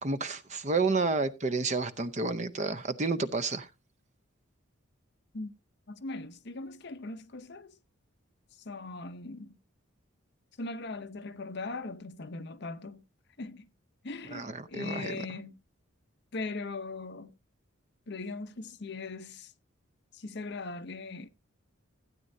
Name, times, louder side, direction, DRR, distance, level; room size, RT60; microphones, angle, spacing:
voice 1, 0.0-3.7 14.3-15.2, right 3 dB, 35° right, 0.6 m, -30 dB
voice 2, 5.9-7.7 8.6-9.6 10.6-13.0 13.4-13.7 14.0-15.5 16.3-17.3 18.1-19.5 20.1-21.3, left 3 dB, 50° left, 0.7 m, -39 dB
15.5 x 8.9 x 2.7 m
head